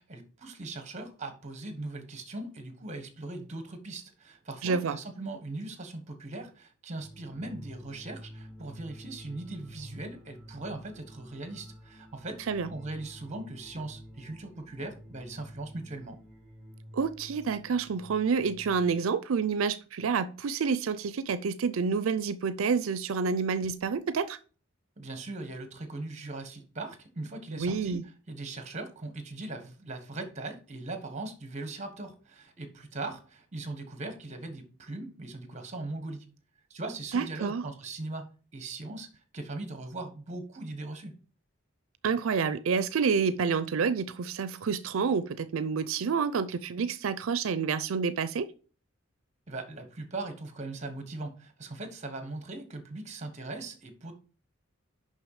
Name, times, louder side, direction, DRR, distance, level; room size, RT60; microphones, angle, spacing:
voice 1, 0.1-16.2 25.0-36.3 36.7-41.1 49.5-54.1, right 2 dB, 35° right, 1.4 m, -40 dB
voice 2, 4.6-5.0 12.5-12.7 16.9-24.4 27.5-28.0 37.1-37.7 42.0-48.5, right 5 dB, 85° right, 0.5 m, -28 dB
sound 1, 7.0-19.0, equal, ahead, 1.9 m, -49 dB
6.4 x 5.6 x 4.9 m
head